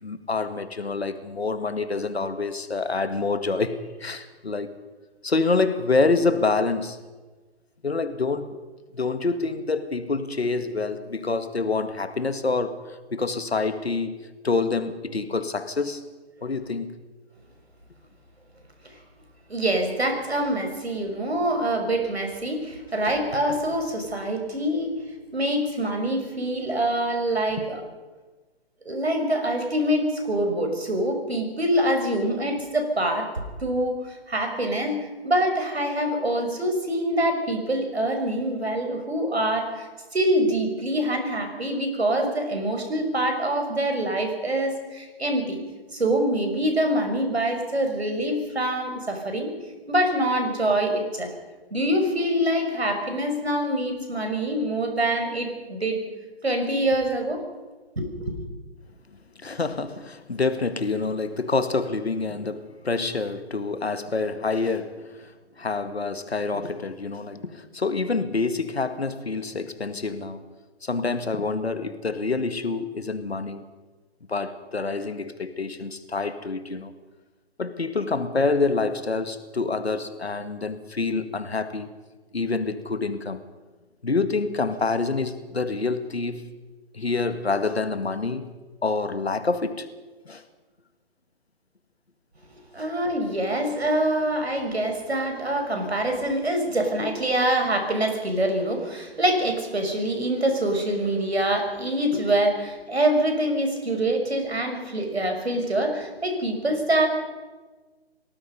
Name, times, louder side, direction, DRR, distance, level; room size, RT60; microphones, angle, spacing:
voice 1, 0.0-4.7 5.2-7.0 7.8-8.6 8.9-16.0 16.4-16.9 59.1-65.3 65.6-70.5 70.8-73.6 74.3-76.9 77.6-81.9 82.3-83.4 84.0-86.4 86.9-88.5 88.8-89.9 90.3-90.4, left 3 dB, 75° left, 2.1 m, -27 dB
voice 2, 19.5-24.9 25.3-27.8 28.9-33.3 33.6-35.0 35.2-45.6 45.9-49.5 49.9-51.3 51.7-56.0 56.4-57.4 58.0-58.4 92.7-107.1, right 1 dB, 80° right, 5.8 m, -25 dB
29.0 x 18.5 x 5.4 m
figure-of-eight pair, 135°, 32 cm